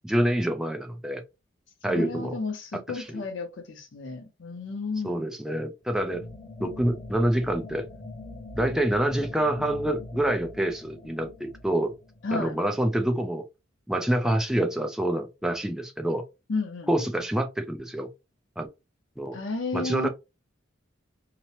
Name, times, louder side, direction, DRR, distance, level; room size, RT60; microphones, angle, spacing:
voice 1, 0.0-1.2 1.8-2.3 2.9-3.2 5.0-6.2 6.6-7.9 8.5-11.9 12.3-13.5 13.9-16.2 16.9-18.1 18.6-18.7 19.2-19.4 19.7-20.1, right 1 dB, 5° right, 0.3 m, -26 dB
voice 2, 1.9-5.3 12.2-12.6 16.5-17.1 19.3-20.1, left 3 dB, 75° left, 0.7 m, -32 dB
sound 1, 5.9-12.6, left 2 dB, 30° left, 0.8 m, -43 dB
2.9 x 2.0 x 2.7 m
head